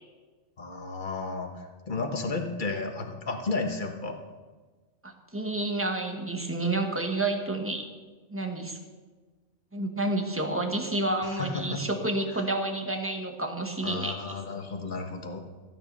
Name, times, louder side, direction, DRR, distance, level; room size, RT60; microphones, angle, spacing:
voice 1, 0.6-4.2 11.4-11.8 13.8-15.4, left 3 dB, 45° left, 4 dB, 1.5 m, -33 dB
voice 2, 5.0-7.9 8.3-8.8 9.7-14.2, right 2 dB, 10° right, 3 dB, 1.3 m, -29 dB
15.5 x 9.1 x 5.4 m, 1.4 s
omnidirectional pair, 1.2 m